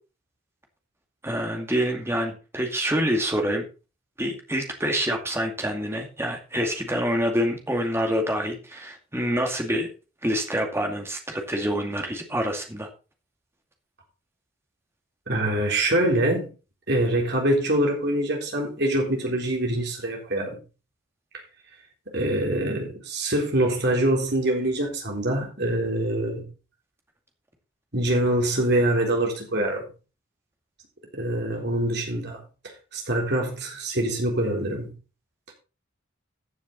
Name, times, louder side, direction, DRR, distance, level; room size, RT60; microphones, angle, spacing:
voice 1, 1.2-3.6 4.2-9.9 10.2-12.9, equal, 10° right, 2.2 m, -26 dB
voice 2, 15.3-16.5 16.9-20.6 22.1-26.5 27.9-29.9 31.1-32.4 32.9-34.9, right 1 dB, 55° right, 3.8 m, -24 dB
14.5 x 7.2 x 4.1 m
head